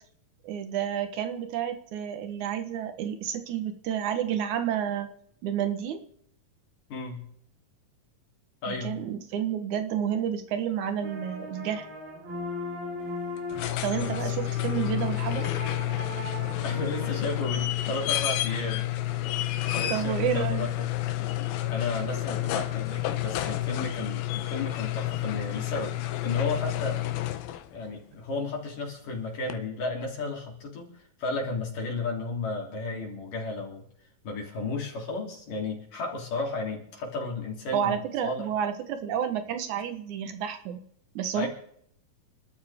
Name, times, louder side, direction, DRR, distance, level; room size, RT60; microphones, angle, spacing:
voice 1, 0.4-5.1 5.4-6.0 8.7-11.8 13.8-15.5 19.9-20.7 37.7-40.8 41.2-41.5, right 9 dB, 65° right, 9 dB, 2.2 m, -30 dB
voice 2, 6.9-7.2 8.6-9.0 14.0-14.6 16.6-18.9 19.7-20.9 21.7-27.0 27.7-33.9 34.2-38.4 41.3-41.5, left 3 dB, 65° left, -1 dB, 4.8 m, -33 dB
sound 1, 11.0-17.2, left 1 dB, 85° right, 7.0 m, -38 dB
sound 2, 13.4-27.8 29.5-29.6, left 15 dB, 85° left, 2.8 m, -30 dB
28.5 x 13.0 x 3.6 m, 0.68 s
omnidirectional pair, 4.2 m